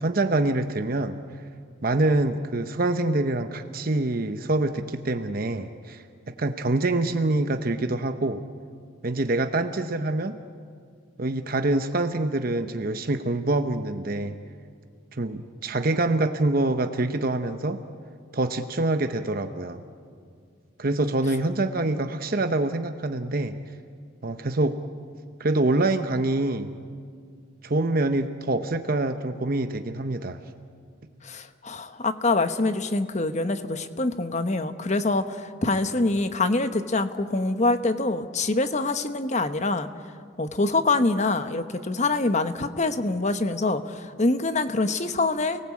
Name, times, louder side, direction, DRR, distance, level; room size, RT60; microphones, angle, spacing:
voice 1, 0.0-1.2 1.8-8.4 9.0-10.4 11.2-14.4 15.1-17.8 18.3-19.8 20.8-23.6 24.2-24.8 25.4-26.7 27.6-30.4, right 2 dB, 45° right, 8 dB, 0.9 m, -25 dB
voice 2, 31.2-39.9 40.4-45.6, left 2 dB, 35° left, 10 dB, 1.1 m, -25 dB
29.5 x 19.0 x 8.5 m, 2.2 s
head